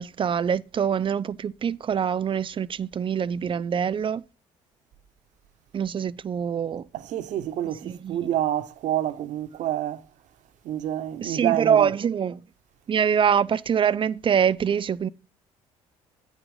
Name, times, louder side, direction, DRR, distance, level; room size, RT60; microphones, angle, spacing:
voice 1, 0.0-4.2 5.7-6.8 7.8-8.3 11.2-12.4 12.9-15.1, right 8 dB, 35° right, 0.5 m, -24 dB
voice 2, 6.9-10.0 10.6-11.9, right 12 dB, 65° right, 0.8 m, -27 dB
8.7 x 4.9 x 5.3 m
supercardioid pair, 70°, 14 cm